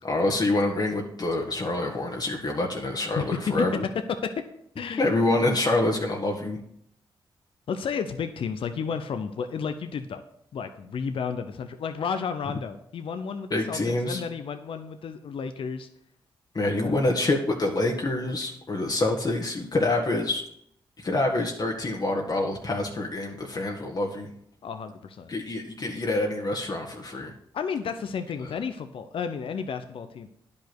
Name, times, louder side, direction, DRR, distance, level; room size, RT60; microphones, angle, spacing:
voice 1, 0.0-3.8 5.0-6.6 13.5-14.2 16.5-20.4 21.0-24.3 25.3-27.3 28.4-28.5, left 2 dB, 45° left, 0 dB, 1.5 m, -26 dB
voice 2, 3.1-3.7 3.9-4.5 4.8-5.0 7.7-10.2 10.5-15.9 16.8-17.1 24.6-25.3 27.5-30.3, left 6 dB, 70° left, 9 dB, 0.8 m, -32 dB
10.0 x 5.4 x 6.1 m, 0.72 s
supercardioid pair, 50°, 10 cm